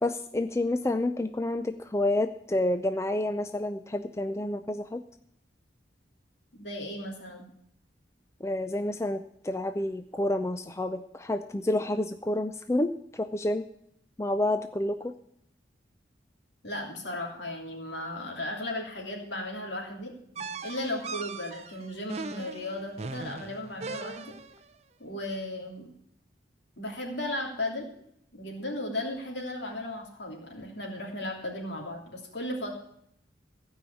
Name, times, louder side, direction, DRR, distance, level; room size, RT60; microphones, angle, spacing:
voice 1, 0.0-5.0 8.4-13.6 14.2-15.1, left 1 dB, 15° left, 9 dB, 0.4 m, -29 dB
voice 2, 6.5-7.5 16.6-20.1 20.6-24.3 25.0-25.9 26.8-27.9 28.3-32.7, left 1 dB, 75° left, 0 dB, 3.1 m, -35 dB
sound 1, 20.4-24.6, right 4 dB, 35° right, 0.5 m, -39 dB
15.5 x 5.6 x 8.4 m, 0.73 s
head